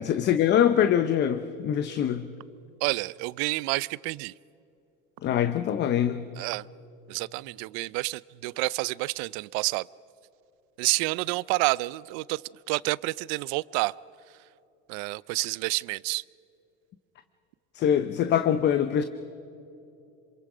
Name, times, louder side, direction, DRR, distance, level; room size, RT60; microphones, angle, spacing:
voice 1, 0.0-2.3 5.2-6.3 17.7-19.0, left 9 dB, 35° left, 10 dB, 0.8 m, -24 dB
voice 2, 2.8-4.3 6.4-6.7 7.1-9.9 10.8-12.4 12.7-13.9 14.9-16.2, right 23 dB, 65° right, 22 dB, 0.5 m, -29 dB
27.0 x 26.5 x 5.0 m, 2.8 s
cardioid pair, 140°, 29 cm